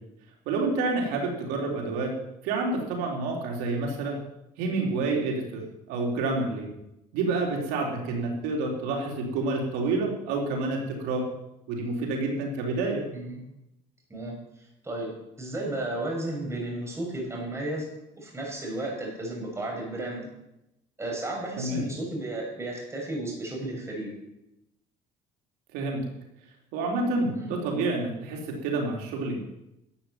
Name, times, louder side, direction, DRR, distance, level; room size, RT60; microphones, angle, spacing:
voice 1, 0.5-2.1 2.4-4.2 4.6-5.6 5.9-6.7 7.1-11.2 11.7-13.0 21.6-21.8 25.7-26.0 26.7-29.4, right 3 dB, 90° right, 0 dB, 3.8 m, -28 dB
voice 2, 14.1-17.9 18.2-20.3 21.0-24.1 27.3-27.5, right 1 dB, 20° right, 0 dB, 6.6 m, -34 dB
13.0 x 8.7 x 9.4 m, 0.88 s
cardioid pair, 105°, 15 cm